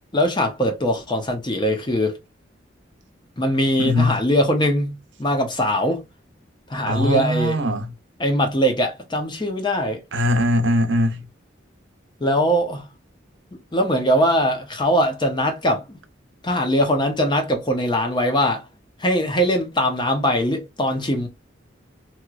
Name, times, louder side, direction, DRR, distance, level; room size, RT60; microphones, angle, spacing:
voice 1, 0.1-2.2 3.4-6.0 6.7-7.6 8.2-10.0 12.2-12.9 13.7-16.0 16.4-18.7 19.0-21.3, equal, 25° left, 0.7 m, -21 dB
voice 2, 3.8-4.2 6.9-7.9 10.1-11.2, left 1 dB, 70° right, 0.7 m, -20 dB
3.1 x 3.0 x 2.4 m
head